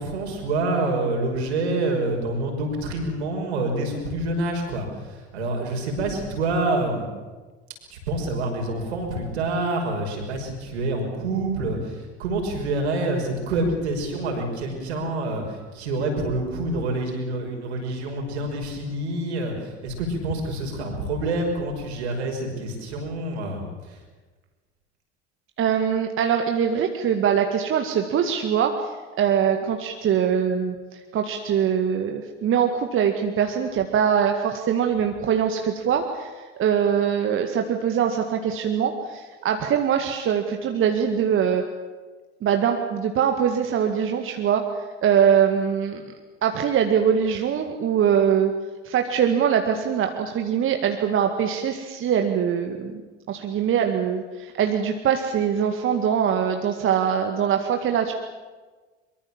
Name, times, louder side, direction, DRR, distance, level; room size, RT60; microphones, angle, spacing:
voice 1, 0.0-7.1 7.9-24.0, right 2 dB, 70° right, 2 dB, 5.9 m, -27 dB
voice 2, 25.6-28.8 29.2-30.7 31.1-36.3 36.6-41.7 42.4-44.6 45.0-46.0 46.4-48.5 48.9-53.0 53.3-58.1, right 8 dB, 35° right, 4 dB, 2.0 m, -22 dB
23.5 x 23.5 x 7.4 m, 1.3 s
figure-of-eight pair, 70°, 34 cm